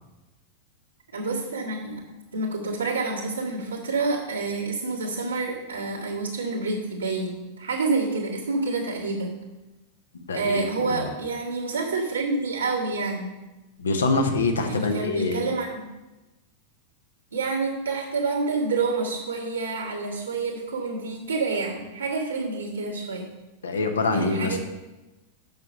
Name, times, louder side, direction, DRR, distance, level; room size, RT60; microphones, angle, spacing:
voice 1, 1.1-2.0 2.3-9.3 10.3-13.3 14.6-15.8 17.3-23.3 24.1-24.6, right 3 dB, 80° right, -6 dB, 1.9 m, -28 dB
voice 2, 10.3-11.1 13.8-15.5 23.6-24.6, left 3 dB, 70° left, 5 dB, 1.0 m, -25 dB
7.8 x 5.9 x 5.4 m, 1.1 s
figure-of-eight pair, 90°, 0 cm